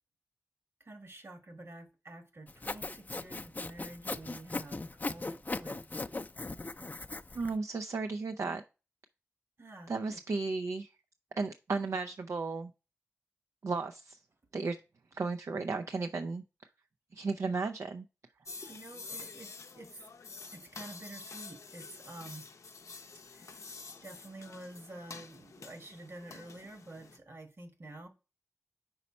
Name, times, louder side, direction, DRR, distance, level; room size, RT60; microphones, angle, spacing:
voice 1, 0.8-5.8 9.6-10.2 18.7-20.0 20.5-22.5 23.3-23.5 24.0-28.1, right 2 dB, 55° right, 1.4 m, -49 dB
Sawing, 2.5-7.5, left 3 dB, 35° left, 0.4 m, -38 dB
voice 2, 7.3-8.6 9.9-10.9 11.4-12.7 13.6-14.2 14.5-14.8 15.1-16.4 17.1-18.1 18.6-18.7, right 4 dB, 75° right, 0.4 m, -34 dB
sound 1, 18.4-27.2, left 4 dB, 85° left, 0.5 m, -48 dB
5.5 x 4.1 x 4.2 m
cardioid pair, 50°, 5 cm